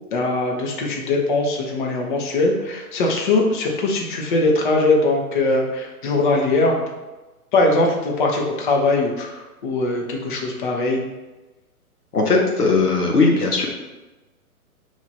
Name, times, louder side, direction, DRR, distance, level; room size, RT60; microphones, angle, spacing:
voice 1, 0.1-6.9 7.5-11.0, left 2 dB, 35° left, 0 dB, 0.7 m, -21 dB
voice 2, 12.1-13.7, left 3 dB, 90° left, 0 dB, 0.9 m, -18 dB
3.1 x 2.5 x 4.0 m, 1.1 s
figure-of-eight pair, 120°, 45 cm